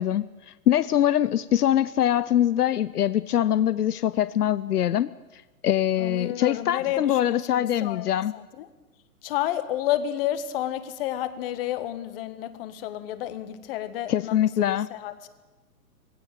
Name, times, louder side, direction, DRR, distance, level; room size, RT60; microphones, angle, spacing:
voice 1, 0.0-8.3 14.1-14.9, left 11 dB, 80° left, 17 dB, 0.7 m, -23 dB
voice 2, 6.0-8.7 9.2-15.3, left 12 dB, 40° left, 13 dB, 1.6 m, -31 dB
19.5 x 17.0 x 9.0 m, 1.2 s
hypercardioid pair, 140°, 46 cm